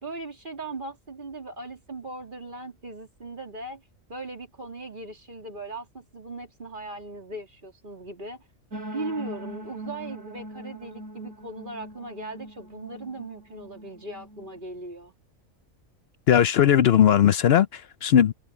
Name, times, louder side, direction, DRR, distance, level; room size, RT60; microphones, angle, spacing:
voice 1, 0.0-3.8 4.1-8.4 8.9-15.1, right 2 dB, 40° right, 3.3 m, -38 dB
sound 1, 8.7-14.6, right 1 dB, 70° right, 8.5 m, -41 dB
voice 2, 16.3-18.3, left 10 dB, 60° left, 0.7 m, -18 dB
omnidirectional pair, 1.4 m